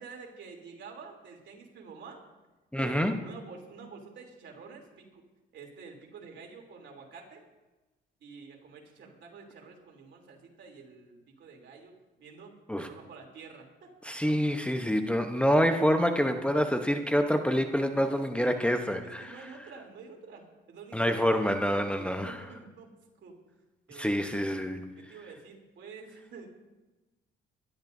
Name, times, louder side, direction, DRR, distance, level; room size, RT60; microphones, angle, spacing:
voice 1, 0.0-2.2 2.8-4.8 5.1-5.2 5.5-7.4 8.2-11.9 12.2-13.9 17.9-18.5 19.2-21.1 21.3-22.9 23.2-23.3 23.9-24.2 25.0-26.5, right 5 dB, 65° right, 1 dB, 3.2 m, -48 dB
voice 2, 2.7-3.2 12.7-12.9 14.0-19.5 20.9-22.4 23.9-24.9, equal, 5° left, 6 dB, 0.9 m, -27 dB
24.0 x 12.0 x 2.7 m, 1.1 s
cardioid pair, 90°, 20 cm